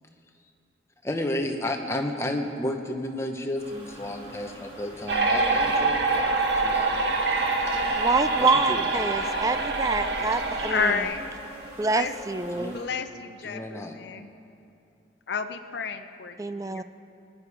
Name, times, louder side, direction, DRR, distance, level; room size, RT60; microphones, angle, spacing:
voice 1, 1.0-6.9 8.4-8.8 10.2-10.3 12.5-12.9 13.4-13.9, left 1 dB, 15° left, 3 dB, 0.9 m, -32 dB
sound 1, 3.5-12.8, equal, 35° right, 3.0 m, -44 dB
sound 2, 5.1-11.0, right 3 dB, 65° right, 1.3 m, -25 dB
voice 2, 8.0-11.1 11.8-12.8 16.4-16.8, right 3 dB, 15° right, 12 dB, 0.3 m, -26 dB
voice 3, 10.7-11.3 11.9-12.1 12.7-14.3 15.3-16.8, left 5 dB, 60° left, 8 dB, 0.5 m, -31 dB
19.0 x 10.0 x 4.8 m, 2.6 s
head